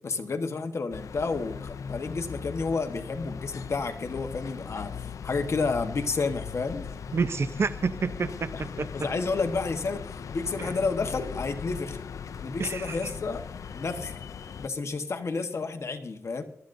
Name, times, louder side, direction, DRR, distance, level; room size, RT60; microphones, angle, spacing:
voice 1, 0.0-6.9 8.5-8.6 8.9-12.0 12.4-13.4 13.7-14.1 14.6-16.4, left 4 dB, 60° left, 6 dB, 1.2 m, -30 dB
sound 1, 0.9-14.7, left 7 dB, 85° left, 0.4 m, -39 dB
voice 2, 7.1-8.9 10.6-10.7 12.6-13.1, right 4 dB, 55° right, 13 dB, 0.6 m, -29 dB
24.0 x 13.0 x 2.6 m, 0.70 s
wide cardioid pair, 120°, 5 cm